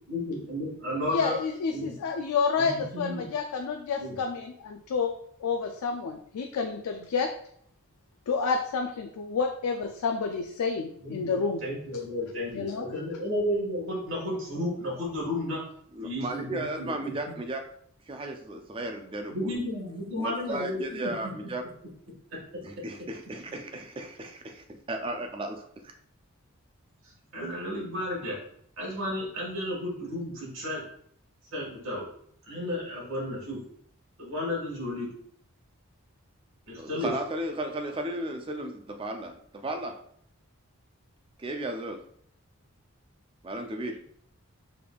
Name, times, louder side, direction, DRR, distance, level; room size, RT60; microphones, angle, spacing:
voice 1, 0.1-1.3 1.7-2.0 2.5-3.3 4.0-4.2 11.0-15.6 16.0-17.4 19.3-21.1 27.3-28.4 28.8-30.8 31.5-32.0 32.4-33.6 34.2-35.1 36.7-37.1, left 1 dB, 65° right, -5 dB, 1.6 m, -33 dB
voice 2, 1.1-5.1 5.4-7.3 8.3-11.6 12.5-12.9, left 5 dB, 90° left, 5 dB, 0.4 m, -29 dB
voice 3, 15.9-17.7 18.1-19.6 20.2-21.7 22.6-25.9 36.8-40.0 41.4-42.0 43.4-44.0, right 1 dB, 25° right, 5 dB, 0.3 m, -35 dB
5.0 x 3.4 x 2.3 m, 0.66 s
head